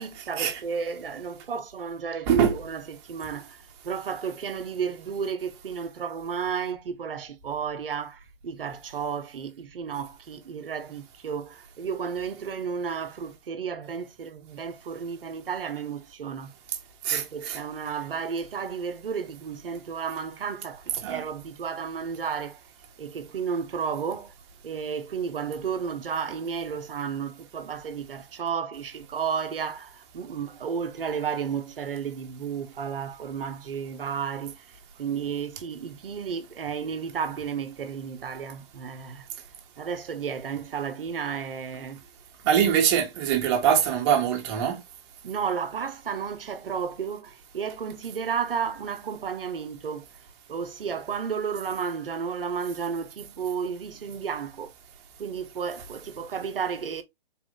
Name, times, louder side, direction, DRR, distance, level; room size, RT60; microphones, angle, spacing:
voice 1, 0.0-16.5 17.1-22.6 23.0-24.3 24.6-34.6 35.0-39.3 39.8-42.0 45.2-50.0 50.5-54.7 55.2-57.0, right 6 dB, 70° right, 1.0 m, -32 dB
voice 2, 2.3-2.6 17.0-17.6 21.0-21.2 42.4-44.8, right 8 dB, 30° right, 1.2 m, -23 dB
4.3 x 2.5 x 3.7 m
hypercardioid pair, 140°, 29 cm